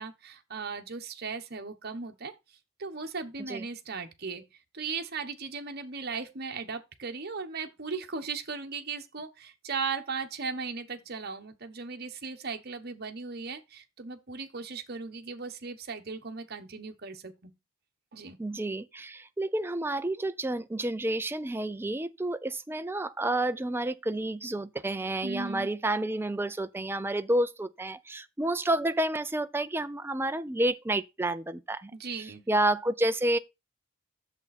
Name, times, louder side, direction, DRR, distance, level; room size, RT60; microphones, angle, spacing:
voice 1, 0.0-2.3 2.8-4.4 4.7-17.5 18.1-18.4 25.2-25.7 31.9-32.5, right 4 dB, 50° right, 1.1 m, -37 dB
voice 2, 18.4-31.9 32.2-33.4, right 1 dB, 10° right, 0.5 m, -30 dB
8.2 x 7.0 x 4.2 m
head